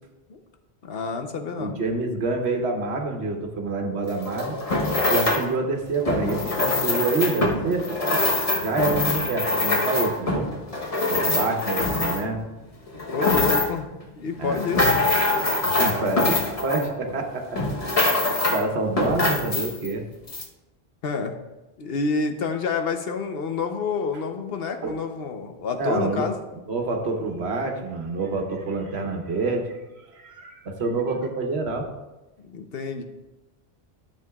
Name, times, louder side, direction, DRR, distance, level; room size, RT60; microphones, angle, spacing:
voice 1, 0.8-1.8 13.1-13.9 14.2-14.9 16.2-16.5 21.0-21.3 21.8-26.4 32.5-33.0, left 4 dB, 70° left, 6 dB, 1.0 m, -28 dB
voice 2, 1.6-4.6 5.1-7.9 8.5-10.5 11.1-12.4 14.4-14.7 15.7-17.6 17.9-20.0 24.8-25.0 25.8-26.3 26.7-29.8 30.1-31.9, right 3 dB, 85° right, 3 dB, 1.3 m, -27 dB
sound 1, 4.1-5.5 6.0-12.4 12.9-13.9 14.4-17.2 17.6-18.7 19.0-19.9 20.3-20.4, left 2 dB, 35° left, 1.1 m, -24 dB
12.5 x 7.1 x 2.3 m, 1.1 s
omnidirectional pair, 1.0 m